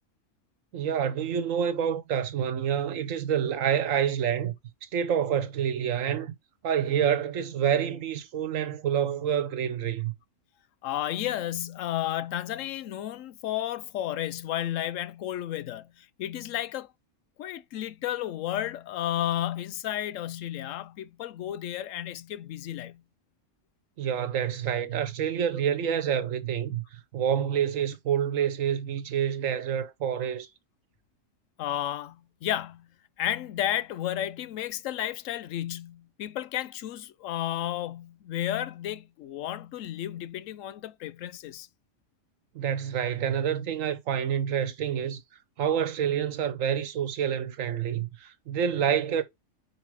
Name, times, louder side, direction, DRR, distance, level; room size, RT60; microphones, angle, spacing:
voice 1, 0.7-4.5 4.8-6.3 6.6-10.1 24.0-30.5 42.5-45.2 45.6-49.2, right 8 dB, 90° right, 1.3 m, -28 dB
voice 2, 10.8-16.9 17.4-23.0 31.6-32.9 33.2-41.7, left 12 dB, 85° left, 1.0 m, -32 dB
5.0 x 4.6 x 4.6 m
omnidirectional pair, 1.3 m